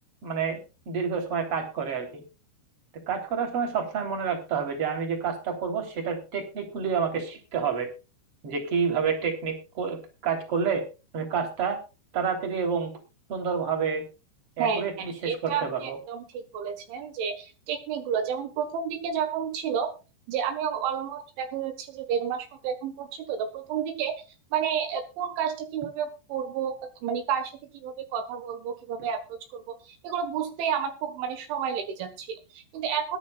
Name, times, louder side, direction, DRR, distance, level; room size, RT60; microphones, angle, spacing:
voice 1, 0.2-2.2 3.1-7.9 8.4-10.8 11.1-11.8 12.1-12.9 13.3-14.0 14.6-16.0, right 6 dB, 30° right, 3 dB, 3.7 m, -29 dB
voice 2, 14.6-19.9 20.3-24.2 24.5-33.2, right 7 dB, 75° right, 8 dB, 3.7 m, -31 dB
21.5 x 10.5 x 2.4 m, 0.30 s
omnidirectional pair, 5.6 m